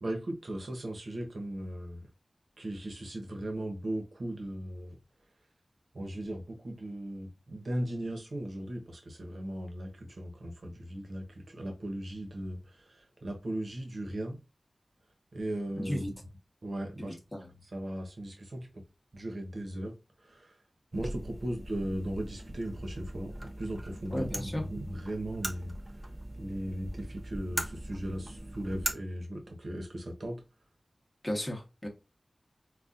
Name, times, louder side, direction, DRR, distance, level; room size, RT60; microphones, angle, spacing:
voice 1, 0.0-2.1 2.6-5.0 5.9-14.4 15.3-16.1 16.6-17.2 17.7-18.8 19.1-19.9 20.2-20.5 20.9-26.0 26.4-30.4, right 1 dB, 70° right, 0.9 m, -37 dB
voice 2, 15.8-16.1 17.0-17.5 24.1-24.6 31.2-31.9, equal, 20° left, 1.0 m, -35 dB
sound 1, 20.9-28.9, right 1 dB, 25° right, 0.6 m, -40 dB
4.0 x 2.3 x 2.4 m
wide cardioid pair, 70°, 0 cm